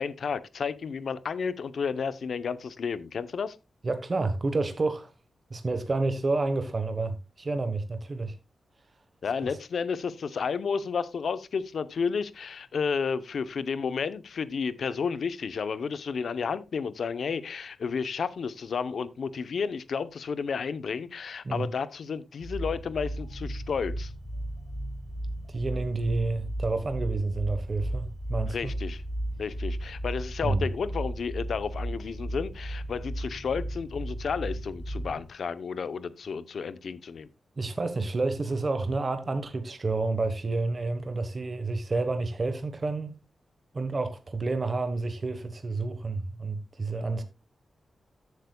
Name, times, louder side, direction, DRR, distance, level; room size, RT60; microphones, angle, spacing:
voice 1, 0.0-3.6 9.2-24.1 28.5-29.0 29.4-37.3, left 5 dB, 60° left, 0.7 m, -32 dB
voice 2, 3.8-5.1 5.5-8.4 21.4-21.7 25.5-28.7 30.4-30.6 37.6-43.2 43.7-47.2, right 3 dB, 30° right, 1.1 m, -29 dB
sound 1, 22.4-35.2, right 1 dB, 20° left, 2.2 m, -35 dB
13.5 x 8.0 x 2.2 m
wide cardioid pair, 160°, 0 cm